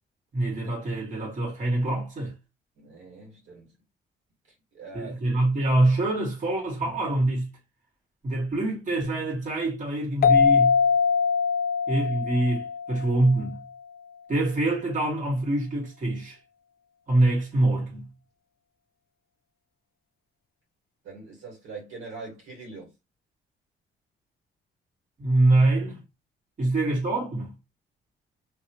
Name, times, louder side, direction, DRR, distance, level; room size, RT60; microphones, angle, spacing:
voice 1, 0.3-2.3 4.9-7.5 8.2-10.8 11.9-13.6 14.3-16.4 17.1-18.1 25.2-26.0 26.6-27.5, right 2 dB, 40° right, 1.9 m, -25 dB
voice 2, 2.8-3.7 4.7-5.2 21.0-22.9 26.6-26.7, right 3 dB, 85° right, 2.0 m, -42 dB
sound 1, 10.2-13.5, left 6 dB, 50° left, 0.4 m, -22 dB
3.1 x 2.9 x 2.9 m
cardioid pair, 90°, 20 cm